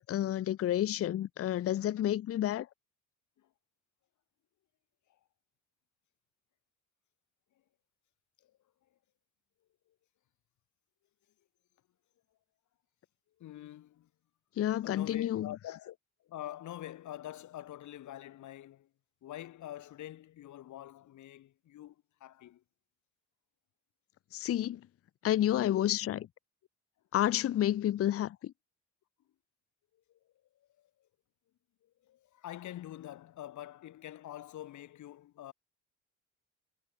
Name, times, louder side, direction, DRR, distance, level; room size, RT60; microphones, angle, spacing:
voice 1, 0.0-2.7 14.6-15.5 24.3-24.8 25.2-26.3 27.1-28.5, left 12 dB, 50° left, 0.6 m, -30 dB
voice 2, 13.4-14.1 14.8-18.9 19.2-22.6 29.9-31.1 31.8-35.5, left 13 dB, 75° left, 1.8 m, -46 dB
cardioid pair, 90°, 30 cm